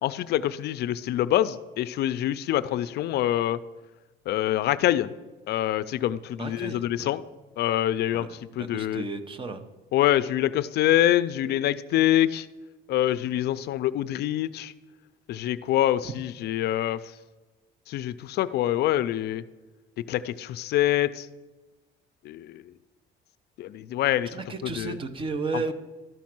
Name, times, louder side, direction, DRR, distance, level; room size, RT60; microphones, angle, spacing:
voice 1, 0.0-3.6 4.3-5.1 5.5-7.2 7.6-9.0 9.9-12.5 12.9-14.7 15.3-17.0 17.9-19.4 20.1-21.3 22.2-22.6 23.6-25.0, left 13 dB, 65° left, 15 dB, 0.4 m, -25 dB
voice 2, 6.4-7.1 8.1-8.3 8.6-9.7 24.3-25.7, right 3 dB, 30° right, 10 dB, 0.7 m, -33 dB
12.5 x 6.2 x 6.0 m, 1.2 s
cardioid pair, 155°, 18 cm